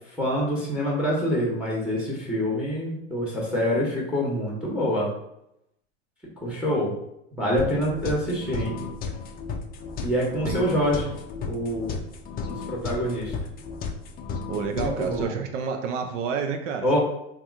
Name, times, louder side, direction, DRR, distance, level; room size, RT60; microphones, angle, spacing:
voice 1, 0.2-5.1 6.4-6.9 7.4-8.7 10.0-11.1 11.4-12.0 12.4-13.3 14.7-15.3 16.8-17.0, equal, 5° right, -3 dB, 1.0 m, -26 dB
sound 1, 7.6-15.3, left 5 dB, 25° left, 0.4 m, -34 dB
voice 2, 10.2-10.9 14.5-17.0, right 6 dB, 80° right, 4 dB, 0.5 m, -30 dB
2.8 x 2.4 x 3.5 m, 0.80 s
supercardioid pair, 110°, 36 cm